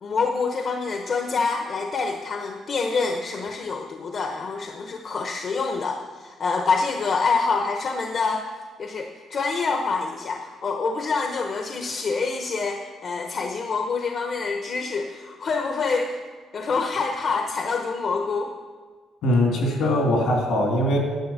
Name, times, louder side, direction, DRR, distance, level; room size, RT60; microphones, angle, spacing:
voice 1, 0.0-8.5 8.8-16.2 16.5-18.5, left 4 dB, 55° left, 4 dB, 1.0 m, -26 dB
voice 2, 19.2-21.0, left 1 dB, 80° left, 1 dB, 3.0 m, -21 dB
10.5 x 7.9 x 7.3 m, 1.5 s
cardioid pair, 90°, 0 cm